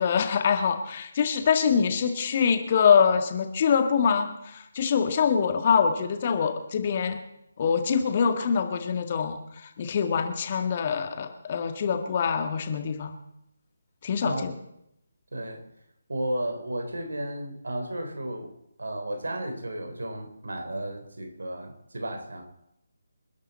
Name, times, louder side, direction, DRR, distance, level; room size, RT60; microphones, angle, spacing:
voice 1, 0.0-7.2 7.6-13.1 14.0-14.5, left 6 dB, 35° left, 7 dB, 1.7 m, -24 dB
voice 2, 15.3-15.6 16.1-18.5 18.8-22.4, right 1 dB, 65° right, 6 dB, 3.6 m, -33 dB
27.0 x 11.0 x 4.2 m, 0.80 s
figure-of-eight pair, 150°, 0 cm